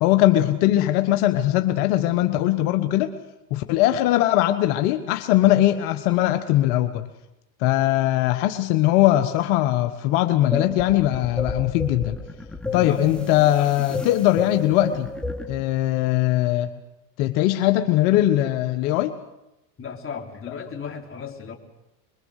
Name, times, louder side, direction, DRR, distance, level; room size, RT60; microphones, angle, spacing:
voice 1, 0.0-3.1 3.5-7.1 7.6-12.2 12.7-15.1 15.5-16.7 17.2-19.1, left 14 dB, 70° left, 8 dB, 1.4 m, -20 dB
sound 1, 10.5-15.7, left 2 dB, ahead, 2.9 m, -32 dB
voice 2, 12.6-13.1 19.8-21.6, left 6 dB, 30° left, 2 dB, 3.6 m, -35 dB
25.5 x 22.0 x 6.5 m, 0.91 s
supercardioid pair, 100°, 45 cm